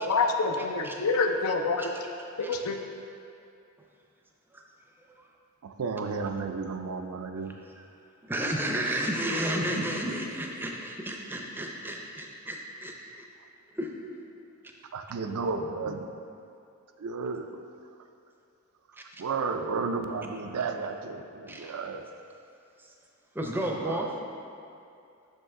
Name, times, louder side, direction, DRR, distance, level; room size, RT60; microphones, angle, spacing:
voice 1, 0.0-1.9 2.4-2.8, left 3 dB, 75° left, 4 dB, 0.5 m, -26 dB
voice 2, 0.6-1.0 1.8-1.9 2.4-2.6 4.5-4.6 5.1-5.3 7.8-7.9 8.2-13.2 13.7-13.9 21.5-21.7 23.3-24.1, right 1 dB, 10° right, 0 dB, 0.5 m, -32 dB
voice 3, 5.6-7.5 14.9-16.1 17.0-17.5 18.9-22.1 23.8-24.1, right 4 dB, 75° right, 6 dB, 0.4 m, -33 dB
6.4 x 5.4 x 3.7 m, 2.5 s
head